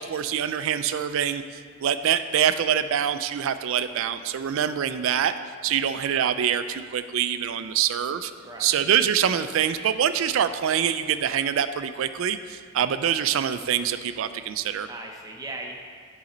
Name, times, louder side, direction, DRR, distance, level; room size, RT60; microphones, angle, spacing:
voice 1, 0.0-1.4 1.8-5.4 5.6-8.3 8.6-14.9, right 9 dB, 60° right, 11 dB, 0.3 m, -25 dB
voice 2, 5.7-6.0 8.4-8.8 14.9-15.7, right 2 dB, 15° right, 0 dB, 0.7 m, -39 dB
10.5 x 4.1 x 3.9 m, 2.1 s
head